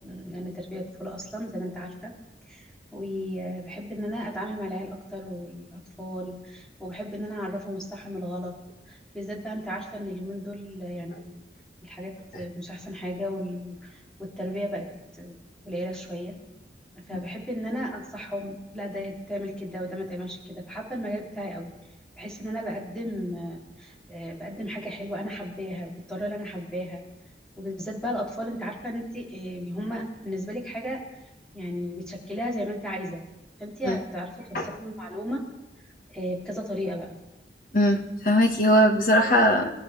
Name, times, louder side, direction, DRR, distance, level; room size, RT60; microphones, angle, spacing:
voice 1, 0.0-2.1 2.5-8.5 8.9-11.3 11.8-14.9 15.1-15.3 15.6-16.3 17.0-21.7 22.2-27.0 27.6-31.0 31.5-33.2 33.6-35.4 36.1-37.1, equal, 5° left, -4 dB, 3.9 m, -34 dB
voice 2, 37.7-39.7, equal, 50° left, 2 dB, 2.1 m, -20 dB
26.0 x 14.5 x 3.7 m, 0.99 s
head